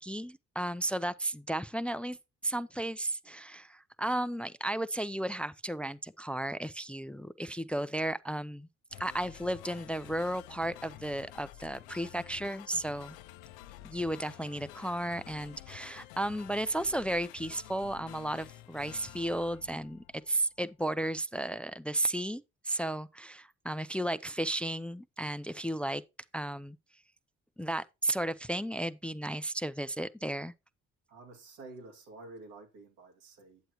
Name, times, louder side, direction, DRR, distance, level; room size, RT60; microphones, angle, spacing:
voice 1, 0.0-2.2 2.4-8.7 9.0-13.2 13.8-26.0 26.3-26.8 27.6-30.5, right 1 dB, 5° left, 0.5 m, -34 dB
sound 1, 8.9-20.5, left 15 dB, 90° left, 0.5 m, -50 dB
voice 2, 31.1-33.6, right 2 dB, 85° right, 2.4 m, -50 dB
9.2 x 7.8 x 3.0 m
supercardioid pair, 70°, 31 cm